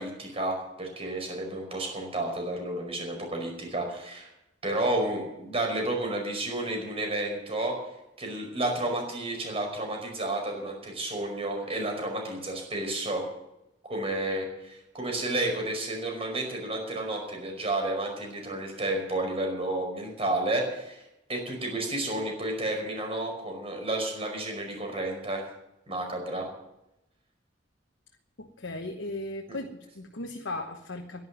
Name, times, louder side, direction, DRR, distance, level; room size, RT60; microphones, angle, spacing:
voice 1, 0.0-4.3 4.6-7.8 8.2-13.2 13.8-21.0 21.3-25.4 25.9-26.5 29.5-29.6, right 1 dB, 35° right, 2 dB, 5.1 m, -31 dB
voice 2, 28.4-31.3, left 2 dB, 85° left, 4 dB, 1.2 m, -37 dB
11.5 x 11.0 x 9.3 m, 0.88 s
head